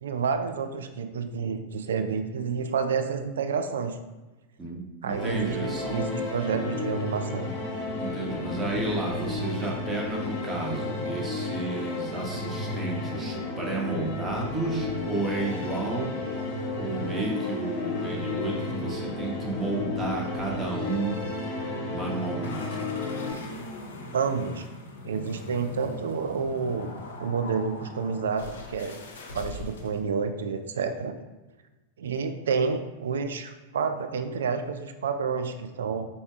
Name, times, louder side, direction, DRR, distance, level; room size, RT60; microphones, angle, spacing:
voice 1, 0.0-4.0 5.0-7.5 24.1-24.6 25.1-26.9 27.2-29.0 29.3-31.2 32.0-36.1, right 5 dB, 65° right, 8 dB, 0.3 m, -29 dB
voice 2, 4.6-6.2 8.0-16.1 16.8-21.2 21.9-22.9, right 2 dB, 15° right, -1 dB, 1.0 m, -32 dB
sound 1, 5.1-23.3, left 2 dB, 45° left, 1.0 m, -32 dB
sound 2, 22.4-30.0, left 2 dB, 65° left, 0.6 m, -41 dB
4.4 x 3.9 x 2.4 m, 1.1 s
figure-of-eight pair, 90°, 0 cm